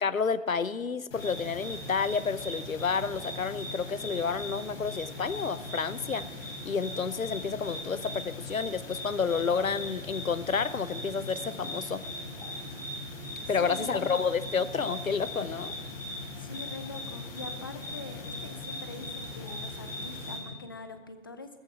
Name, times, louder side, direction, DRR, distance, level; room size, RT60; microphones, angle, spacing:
voice 1, 0.0-6.3 6.6-12.0 13.5-15.7, left 5 dB, 85° left, 16 dB, 0.7 m, -30 dB
sound 1, 1.1-20.4, left 1 dB, 45° left, 4.5 m, -39 dB
voice 2, 13.5-14.1 16.4-21.5, left 3 dB, 20° left, 9 dB, 0.5 m, -44 dB
15.5 x 14.0 x 5.9 m, 1.4 s
figure-of-eight pair, 135°, 40 cm